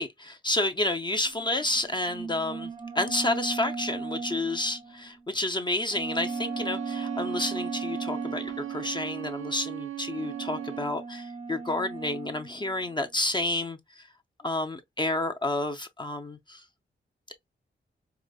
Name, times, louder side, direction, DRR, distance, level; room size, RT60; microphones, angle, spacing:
voice 1, 0.0-14.1 14.4-16.6, left 2 dB, 25° left, 0.5 m, -30 dB
sound 1, 0.9-5.2 5.9-9.2 10.1-12.9, right 4 dB, 30° right, 0.5 m, -37 dB
Bowed string instrument, 6.1-11.0, right 12 dB, 90° right, 0.4 m, -37 dB
4.8 x 2.0 x 2.3 m
wide cardioid pair, 105°, 20 cm